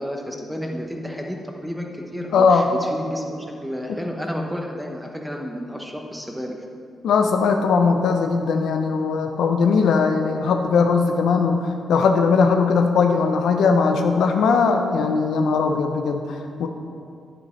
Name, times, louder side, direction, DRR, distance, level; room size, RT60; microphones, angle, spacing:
voice 1, 0.0-1.4 1.6-3.4 3.6-6.6, equal, ahead, 1 dB, 0.9 m, -31 dB
voice 2, 2.3-2.7 7.0-16.7, left 5 dB, 85° left, 4 dB, 0.6 m, -19 dB
10.0 x 8.8 x 3.2 m, 2.4 s
cardioid pair, 130°, 0 cm